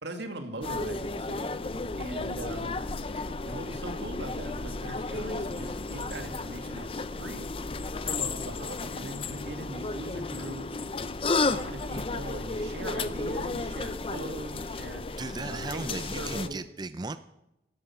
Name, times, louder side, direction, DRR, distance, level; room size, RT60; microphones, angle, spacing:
voice 1, 0.0-1.6 2.0-2.8 3.5-7.5 8.0-10.9 11.4-15.0 15.5-16.6, right 2 dB, 80° right, 6 dB, 2.1 m, -40 dB
sound 1, 0.6-16.5, left 3 dB, 30° left, 0.6 m, -33 dB
sound 2, 2.6-7.0, equal, ahead, 3.7 m, -50 dB
voice 2, 15.2-17.2, right 3 dB, 25° right, 12 dB, 0.4 m, -36 dB
13.0 x 12.0 x 6.0 m, 0.92 s
head